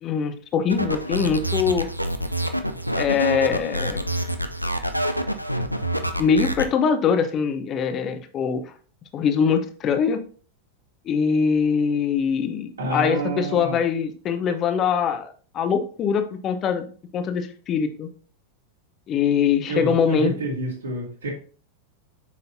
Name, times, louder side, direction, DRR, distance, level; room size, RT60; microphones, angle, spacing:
voice 1, 0.0-1.9 3.0-4.1 6.2-8.7 9.1-10.2 11.1-16.9 17.1-18.1 19.1-20.3, left 6 dB, 30° left, 8 dB, 0.9 m, -23 dB
sound 1, 0.7-6.7, equal, 90° right, 0.6 m, -26 dB
voice 2, 12.8-13.8 19.7-21.3, right 2 dB, 70° right, -3 dB, 3.1 m, -28 dB
7.5 x 5.6 x 2.7 m, 0.41 s
figure-of-eight pair, 90°, 0 cm